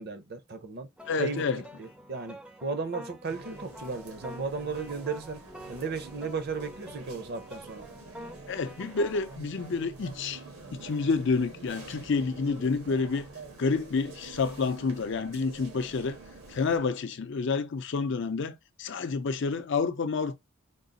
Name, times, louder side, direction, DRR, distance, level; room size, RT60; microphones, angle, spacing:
voice 1, 0.0-0.9 1.2-1.4 1.8-5.4 5.7-7.8, right 4 dB, 50° right, 0.6 m, -35 dB
sound 1, 1.0-9.4, equal, 5° right, 0.5 m, -47 dB
voice 2, 1.1-1.6 8.5-10.4 10.7-13.3 13.6-16.2 16.5-20.4, left 4 dB, 55° left, 0.5 m, -29 dB
sound 2, 3.3-16.8, right 3 dB, 90° right, 1.4 m, -47 dB
3.8 x 2.4 x 3.9 m
head